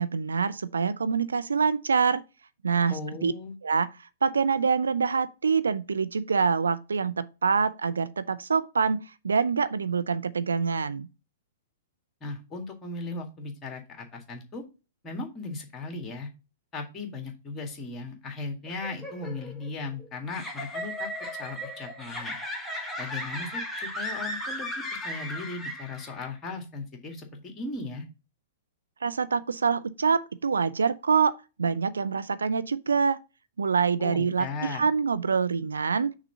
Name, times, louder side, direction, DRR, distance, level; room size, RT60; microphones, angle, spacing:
voice 1, 0.0-2.2 2.6-3.0 3.2-3.3 3.6-3.9 4.2-11.1 29.0-33.2 33.6-36.1, right 5 dB, 70° right, 0.4 m, -25 dB
voice 2, 2.9-3.6 12.2-14.6 15.0-16.3 16.7-21.1 21.4-22.4 23.0-28.1 34.0-34.9, left 3 dB, 20° left, 1.8 m, -37 dB
sound 1, 18.7-26.3, left 1 dB, 5° left, 1.4 m, -36 dB
6.2 x 3.7 x 5.4 m
figure-of-eight pair, 110°, 0 cm